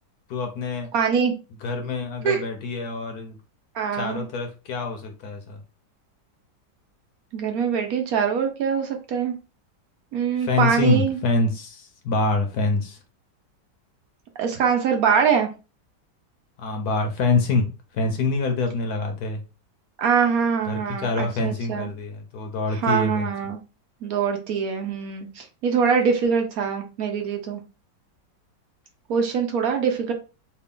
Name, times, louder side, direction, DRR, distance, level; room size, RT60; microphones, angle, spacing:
voice 1, 0.3-0.9 1.6-3.4 3.9-5.6 10.4-13.0 16.6-17.7 17.9-19.4 20.7-23.3, left 3 dB, 65° left, 1.1 m, -25 dB
voice 2, 0.9-1.3 2.2-2.4 3.7-4.2 7.3-9.4 10.1-11.2 14.4-15.5 20.0-21.9 22.7-23.6 24.0-27.6 29.1-30.1, right 6 dB, 70° right, 0.9 m, -23 dB
3.3 x 2.4 x 3.6 m
omnidirectional pair, 1.9 m